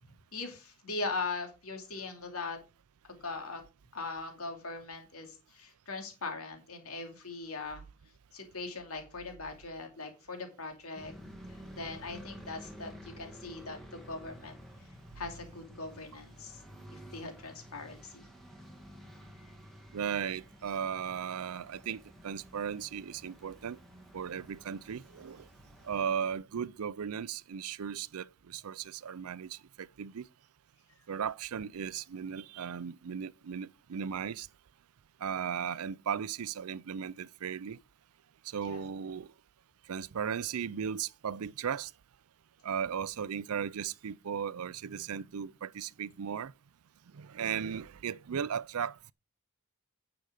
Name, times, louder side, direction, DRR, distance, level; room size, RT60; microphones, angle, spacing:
voice 1, 0.3-2.6 3.1-3.6 3.9-7.8 8.3-11.1 11.5-14.6 15.2-16.6 16.9-18.3 35.5-35.7 38.6-38.8 47.5-47.6, left 3 dB, 75° left, 2.7 m, -40 dB
sound 1, 10.9-26.2, equal, ahead, 2.2 m, -52 dB
voice 2, 19.9-23.8 24.1-25.5 25.8-30.2 31.1-34.5 35.2-37.8 38.4-39.3 39.9-41.9 42.6-46.5 47.1-49.1, right 7 dB, 80° right, 0.5 m, -36 dB
10.0 x 6.9 x 4.9 m
head